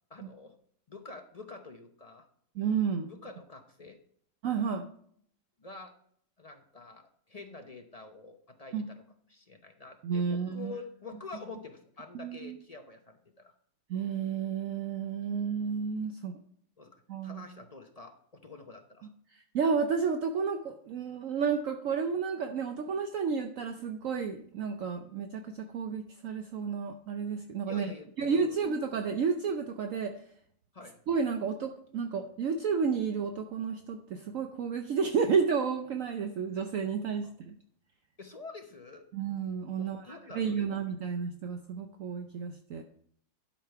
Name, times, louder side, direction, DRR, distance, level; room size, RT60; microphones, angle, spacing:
voice 1, 0.1-0.6 0.9-2.3 3.1-4.0 5.6-5.9 6.4-9.0 9.3-13.5 15.2-15.3 16.8-19.1 27.7-28.6 30.7-31.0 37.2-37.3 38.2-39.0 39.8-40.8, left 3 dB, 35° left, 4 dB, 0.6 m, -47 dB
voice 2, 2.6-3.1 4.4-4.8 8.7-8.9 10.0-10.7 12.1-12.6 13.9-16.4 17.1-17.4 19.5-27.9 28.2-30.1 31.1-37.6 39.1-42.8, right 6 dB, 65° right, 5 dB, 1.0 m, -31 dB
11.5 x 5.2 x 4.5 m, 0.64 s
omnidirectional pair, 1.7 m